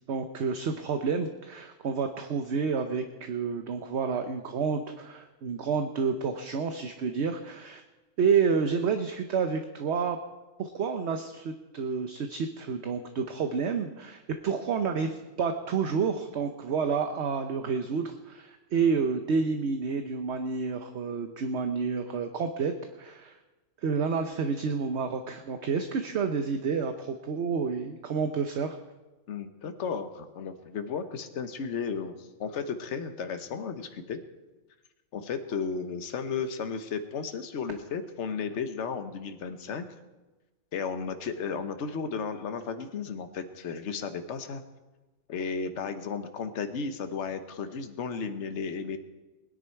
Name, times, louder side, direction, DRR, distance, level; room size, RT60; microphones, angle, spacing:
voice 1, 0.1-7.8 8.2-10.2 10.6-23.4 23.8-28.8, right 5 dB, 60° right, 7 dB, 1.0 m, -29 dB
voice 2, 29.3-34.2 35.1-39.8 40.7-44.6 45.3-49.0, left 5 dB, 60° left, 8 dB, 1.2 m, -34 dB
20.0 x 10.0 x 4.6 m, 1.2 s
omnidirectional pair, 1.4 m